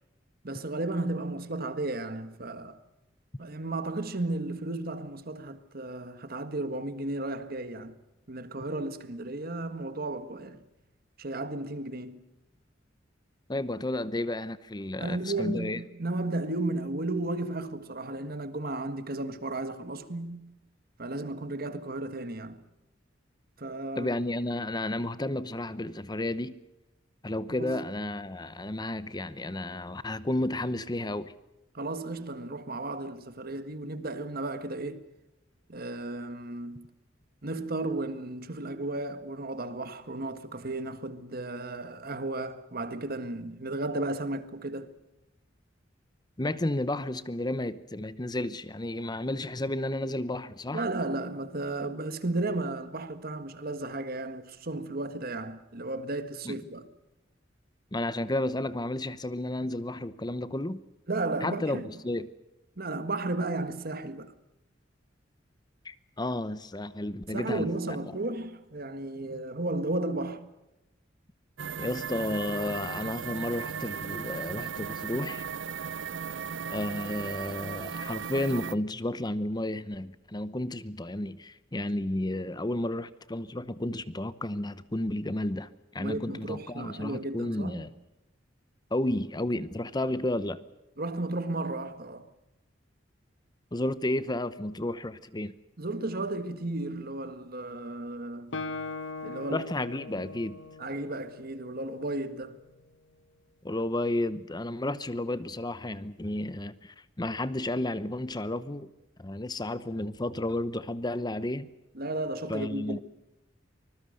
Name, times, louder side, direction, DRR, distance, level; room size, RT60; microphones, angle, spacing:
voice 1, 0.4-2.8 3.4-7.9 8.3-10.6 11.2-12.2 15.0-20.5 21.0-22.6 23.6-24.1 27.5-27.8 31.7-35.0 35.7-36.9 37.4-44.9 50.7-56.9 61.1-61.9 62.8-64.3 67.3-70.5 86.0-87.9 91.0-92.2 95.8-98.5 99.2-99.7 100.8-102.6 111.9-113.0, right 2 dB, 50° right, 1.7 m, -34 dB
voice 2, 13.5-15.8 24.0-26.6 27.2-31.3 46.4-50.8 56.4-56.6 57.9-60.8 61.4-62.3 65.8-68.0 71.8-75.5 76.7-87.9 88.9-90.6 93.7-95.5 99.5-100.6 103.6-108.9 109.2-111.7 112.5-113.0, left 1 dB, 20° left, 0.8 m, -32 dB
sound 1, 71.6-78.7, right 6 dB, 85° right, 0.8 m, -36 dB
Guitar, 98.5-102.2, left 3 dB, 75° left, 1.3 m, -40 dB
25.0 x 20.5 x 6.6 m
head